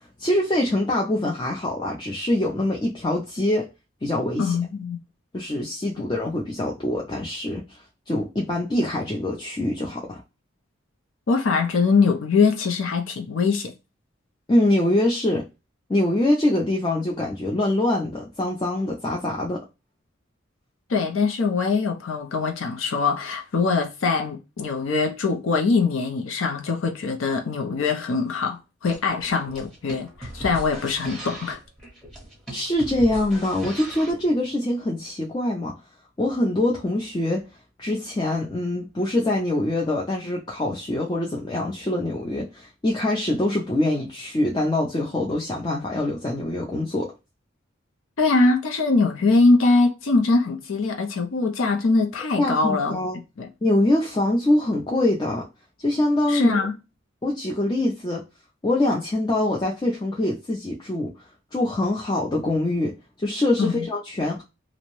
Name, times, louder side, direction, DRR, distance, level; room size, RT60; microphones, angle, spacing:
voice 1, 0.2-3.7 4.0-4.5 5.3-10.2 14.5-15.4 15.9-19.6 32.5-35.7 36.2-37.4 37.8-47.1 52.4-53.2 53.6-55.4 55.8-56.6 57.2-58.2 58.6-61.1 61.5-64.4, left 1 dB, 20° left, 0.4 m, -24 dB
voice 2, 4.4-5.0 11.3-13.7 20.9-31.6 48.2-53.0 53.4-53.5 56.3-56.7 63.6-63.8, left 4 dB, 80° left, 0.5 m, -22 dB
sound 1, 28.9-34.3, right 1 dB, 5° left, 0.8 m, -38 dB
2.6 x 2.0 x 3.0 m
head